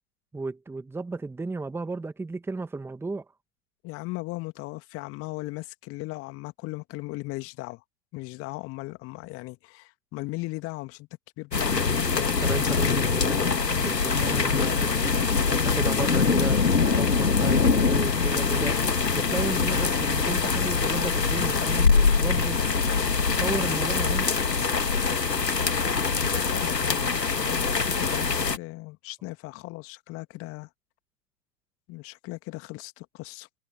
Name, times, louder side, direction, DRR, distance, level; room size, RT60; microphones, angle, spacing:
voice 1, 0.3-3.3 12.4-15.2 15.6-18.8 19.2-22.8 23.4-24.3, right 3 dB, 5° right, 2.1 m, -34 dB
voice 2, 3.8-7.8 8.1-11.1 11.4-11.9 12.1-12.4 26.3-30.7 31.9-33.5, left 22 dB, 25° left, 2.3 m, -37 dB
sound 1, 11.5-28.6, left 5 dB, 80° left, 1.8 m, -23 dB
figure-of-eight pair, 110°, 49 cm